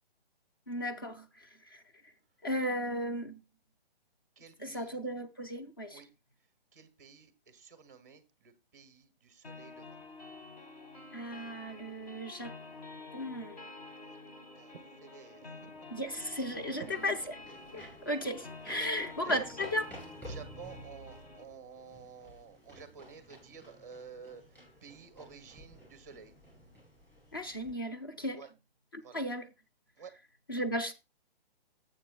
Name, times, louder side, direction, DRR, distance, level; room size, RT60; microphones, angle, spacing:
voice 1, 0.7-1.8 2.4-3.4 4.6-6.0 11.1-12.5 13.1-13.6 15.9-17.2 17.7-19.8 27.3-28.4 28.9-29.5 30.5-30.9, equal, 20° left, 0.5 m, -35 dB
voice 2, 4.4-5.0 5.9-6.1 6.7-10.0 14.0-14.2 14.6-15.9 16.7-17.0 18.8-19.4 20.2-26.3 28.4-28.5 29.0-29.2 30.0-30.1, right 6 dB, 15° right, 0.7 m, -51 dB
sound 1, 9.4-21.4, left 3 dB, 40° left, 1.8 m, -49 dB
sound 2, 15.9-27.7, equal, 5° left, 5.7 m, -51 dB
12.5 x 7.7 x 2.3 m
hypercardioid pair, 175°, 31 cm